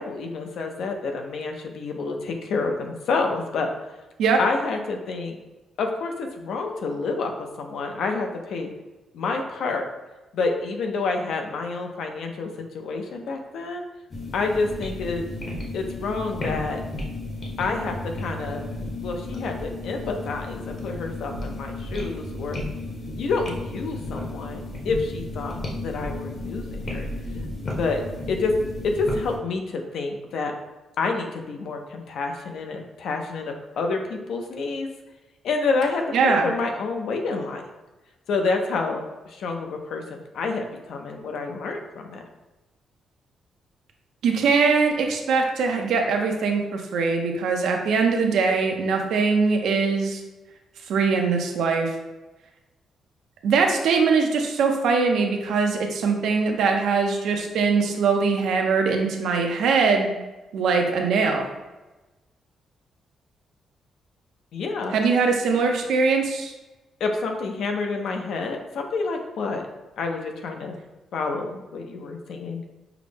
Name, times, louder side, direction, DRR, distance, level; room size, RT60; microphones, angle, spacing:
voice 1, 0.0-3.7 4.4-5.4 5.8-8.7 9.1-9.9 10.3-13.8 14.3-15.2 15.7-16.8 17.6-18.7 19.0-22.6 23.2-27.1 27.7-28.5 28.8-30.6 31.0-34.9 35.4-37.6 38.3-42.2 64.5-65.0 67.0-69.6 70.0-70.8 71.1-72.6, left 3 dB, 70° left, 4 dB, 0.5 m, -28 dB
sound 1, 14.1-29.4, left 2 dB, 35° left, 0.8 m, -33 dB
voice 2, 36.1-36.5 44.2-50.2 50.9-51.9 53.4-60.1 60.5-61.5 64.9-66.5, right 4 dB, 80° right, 3 dB, 0.6 m, -22 dB
5.8 x 2.0 x 3.3 m, 1.1 s
cardioid pair, 165°, 0 cm